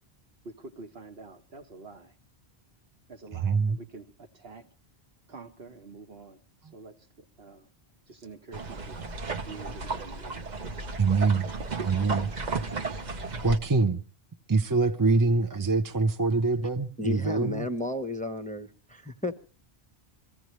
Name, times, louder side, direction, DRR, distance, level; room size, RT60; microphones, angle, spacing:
voice 1, 0.4-2.1 3.1-4.7 5.3-7.7 8.1-9.0 9.5-10.4, right 3 dB, 65° right, 1.4 m, -47 dB
voice 2, 3.3-3.8 11.0-11.5 11.8-12.3 12.8-13.0 13.4-14.0 14.5-17.7, right 4 dB, 20° right, 0.6 m, -25 dB
sound 1, 8.5-13.6, right 3 dB, 45° right, 0.9 m, -34 dB
voice 3, 17.0-19.3, left 1 dB, 10° left, 0.9 m, -33 dB
24.0 x 15.5 x 3.1 m
omnidirectional pair, 1.1 m